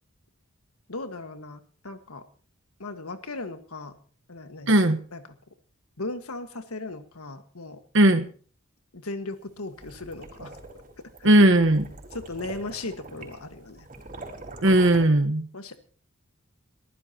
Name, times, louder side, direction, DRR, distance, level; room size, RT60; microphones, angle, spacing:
voice 1, 0.9-2.2 2.8-4.0 4.3-4.8 5.1-5.2 6.0-7.8 8.9-10.6 11.2-11.3 12.1-13.9 15.5-15.8, left 2 dB, 90° left, 8 dB, 1.7 m, -37 dB
voice 2, 4.7-5.0 7.9-8.3 11.2-11.9 14.6-15.4, right 1 dB, 60° right, 7 dB, 1.3 m, -18 dB
sound 1, 9.5-15.0, right 2 dB, 40° right, 4.5 m, -43 dB
22.5 x 15.0 x 2.9 m, 0.43 s
head